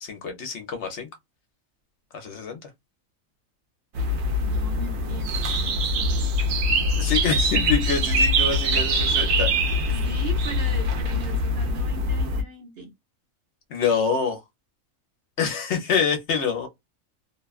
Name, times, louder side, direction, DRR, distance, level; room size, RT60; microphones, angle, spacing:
voice 1, 0.0-1.1 2.1-2.6 7.0-9.8 13.7-14.4 15.4-16.7, left 6 dB, 60° left, 1.0 m, -26 dB
sound 1, 3.9-12.4, equal, 80° right, 1.1 m, -23 dB
voice 2, 4.4-6.9 9.9-12.9, right 2 dB, 50° right, 1.0 m, -39 dB
2.8 x 2.2 x 2.4 m
omnidirectional pair, 1.4 m